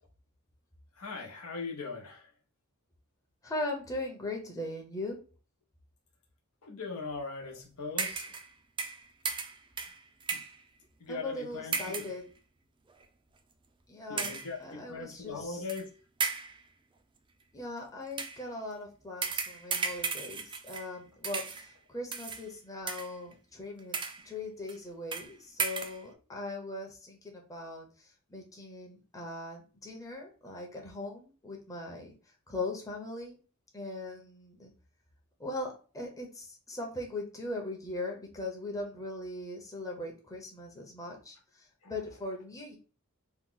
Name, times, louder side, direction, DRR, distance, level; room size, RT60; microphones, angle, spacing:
voice 1, 1.0-2.3 6.6-8.3 10.3-10.4 11.0-12.1 14.1-15.9 41.8-41.9, left 4 dB, 90° left, 2 dB, 0.9 m, -40 dB
voice 2, 3.4-5.2 11.1-12.2 13.9-15.6 17.5-24.0 24.2-32.1 32.5-33.4 33.7-34.7 35.4-42.8, left 2 dB, 15° left, 0 dB, 0.7 m, -40 dB
sound 1, 8.0-8.5 8.8-10.6 11.7-12.2 12.9-13.0 14.2-14.6 15.7-15.8 16.2-16.6 18.1-18.4 19.2-21.0 21.2-21.7 22.1-22.5 22.9-23.3 23.8-24.3 24.7-24.8 25.1-25.3 25.6-26.0, right 5 dB, 20° right, 0.4 m, -35 dB
2.9 x 2.3 x 3.7 m, 0.37 s
head